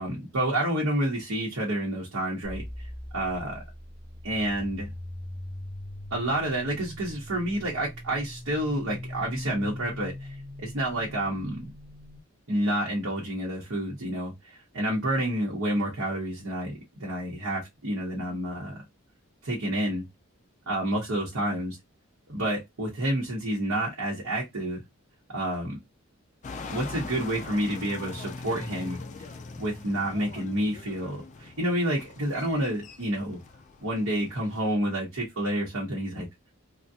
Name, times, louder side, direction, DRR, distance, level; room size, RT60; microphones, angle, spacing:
voice 1, 0.0-2.9 3.1-3.6 4.2-4.9 6.1-11.7 12.5-16.7 17.0-18.8 19.4-20.0 20.7-21.8 22.3-24.8 25.3-25.8 26.7-29.0 29.5-33.4 33.8-36.3, right 1 dB, 70° right, 1.0 m, -29 dB
sound 1, 2.4-12.2, left 1 dB, 5° left, 0.8 m, -41 dB
sound 2, 26.4-34.7, left 4 dB, 35° left, 0.3 m, -42 dB
3.4 x 2.3 x 2.7 m
head